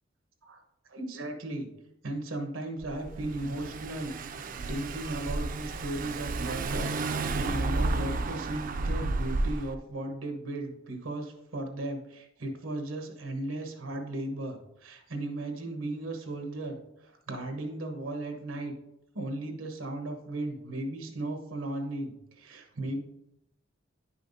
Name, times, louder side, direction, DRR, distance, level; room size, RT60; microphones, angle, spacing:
voice 1, 0.4-1.7 2.0-4.2 4.7-18.7 19.1-23.0, right 1 dB, 90° right, 4 dB, 1.3 m, -36 dB
Car / Engine, 2.8-9.8, right 3 dB, 45° right, 0.4 m, -32 dB
10.0 x 5.7 x 2.7 m, 0.87 s
head